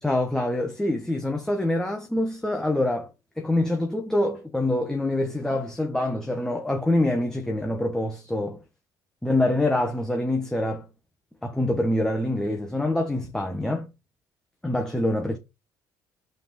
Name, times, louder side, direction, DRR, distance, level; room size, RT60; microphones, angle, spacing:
voice 1, 0.0-3.1 3.4-8.6 9.2-10.9 11.4-13.9 14.6-15.4, left 1 dB, 5° left, 1.7 m, -25 dB
5.5 x 5.3 x 4.5 m
supercardioid pair, 75°, 9 cm